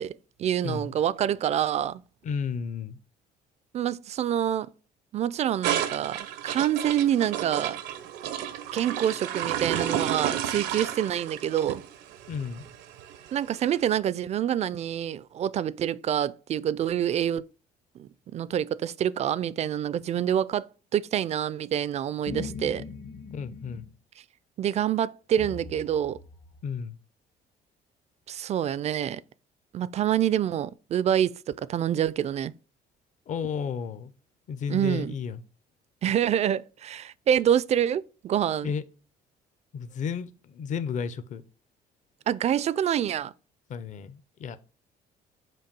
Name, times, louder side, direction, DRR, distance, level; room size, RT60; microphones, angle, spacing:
voice 1, 0.0-2.0 3.7-4.7 5.1-7.8 8.7-11.8 13.3-17.4 18.0-22.8 24.6-26.2 28.3-29.2 29.7-32.5 34.7-35.2 36.0-38.7 42.3-43.3, right 10 dB, 40° right, 0.4 m, -27 dB
voice 2, 2.2-3.0 12.3-12.6 23.3-23.9 26.6-27.0 33.3-34.1 34.5-35.4 38.6-38.8 39.7-41.4 43.7-44.6, left 6 dB, 45° left, 0.7 m, -32 dB
sound 1, 5.6-13.9, right 10 dB, 90° right, 0.8 m, -32 dB
sound 2, 22.3-23.9 25.4-26.6, left 4 dB, 65° left, 1.7 m, -40 dB
7.6 x 2.7 x 5.3 m
cardioid pair, 110°, 17 cm